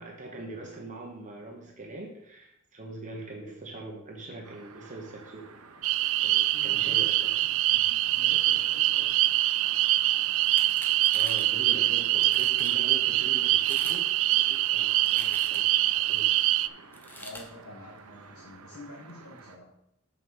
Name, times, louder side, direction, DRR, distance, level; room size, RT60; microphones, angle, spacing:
voice 1, 0.0-5.5 6.2-7.3 11.1-16.5, right 2 dB, 35° right, 0 dB, 1.2 m, -43 dB
sound 1, 4.4-19.6, right 4 dB, 90° right, 0.9 m, -51 dB
sound 2, 5.8-16.7, right 16 dB, 65° right, 0.3 m, -24 dB
voice 2, 6.5-7.0 7.4-9.1 11.7-12.3 17.2-19.7, left 1 dB, 70° left, -4 dB, 1.7 m, -48 dB
sound 3, 10.4-11.5 12.0-12.1 12.3-12.8 13.5-14.0 14.3-15.8 16.9-17.5, left 1 dB, 10° left, 0.8 m, -44 dB
7.0 x 5.2 x 6.3 m, 0.80 s
head